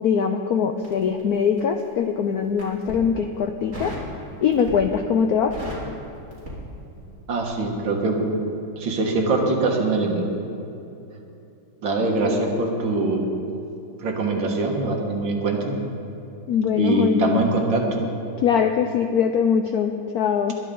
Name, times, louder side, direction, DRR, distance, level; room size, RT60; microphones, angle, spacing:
voice 1, 0.0-3.9 4.4-5.5 16.5-17.4 18.4-20.5, left 7 dB, 75° left, 6 dB, 0.8 m, -22 dB
Crackle, 0.8-1.9 2.5-3.0 3.7-4.1 4.5-5.0 5.3-7.2 7.5-7.7, equal, 40° right, 3.5 m, -36 dB
voice 2, 7.3-8.3 8.8-10.3 11.8-13.2 14.0-15.8 16.8-18.0, right 2 dB, 70° right, 1 dB, 2.2 m, -23 dB
21.0 x 11.0 x 3.8 m, 2.8 s
omnidirectional pair, 2.2 m